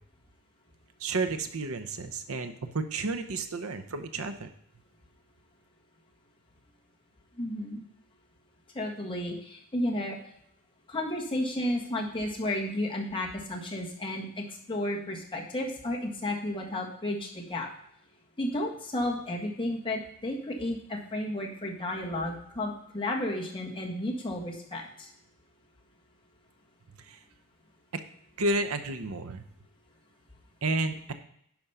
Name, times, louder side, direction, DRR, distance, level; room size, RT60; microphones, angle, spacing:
voice 1, 1.0-4.5 27.1-27.2 28.4-29.4 30.6-31.1, right 2 dB, 70° right, 9 dB, 0.8 m, -31 dB
voice 2, 7.4-7.8 8.7-10.2 10.9-17.7 18.4-25.1, left 1 dB, 25° left, -1 dB, 1.6 m, -32 dB
10.5 x 5.1 x 5.6 m, 0.70 s
head